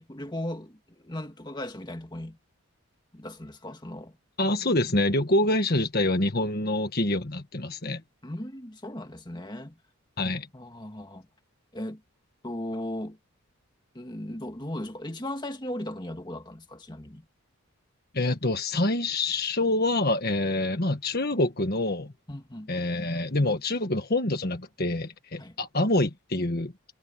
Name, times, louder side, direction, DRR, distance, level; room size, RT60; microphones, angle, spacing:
voice 1, 0.0-2.4 3.1-4.2 8.2-9.8 10.5-11.3 11.7-12.0 12.4-13.2 13.9-17.2 22.3-22.7 25.4-25.6, left 1 dB, 20° left, 1.9 m, -37 dB
voice 2, 4.4-8.0 10.2-10.5 18.1-22.1 22.7-26.7, left 2 dB, 45° left, 1.6 m, -26 dB
head